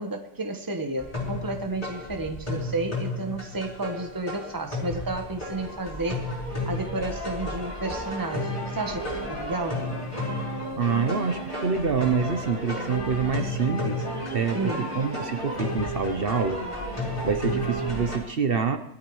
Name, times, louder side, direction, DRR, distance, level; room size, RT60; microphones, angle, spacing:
voice 1, 0.0-6.3 6.7-9.9 14.5-14.9, right 2 dB, 20° right, 4 dB, 1.3 m, -31 dB
sound 1, 1.0-18.2, left 1 dB, 30° left, 5.1 m, -32 dB
voice 2, 10.7-14.1 14.3-16.6 17.2-18.8, right 5 dB, 55° right, 8 dB, 1.0 m, -26 dB
20.5 x 12.5 x 3.2 m, 0.76 s
omnidirectional pair, 1.2 m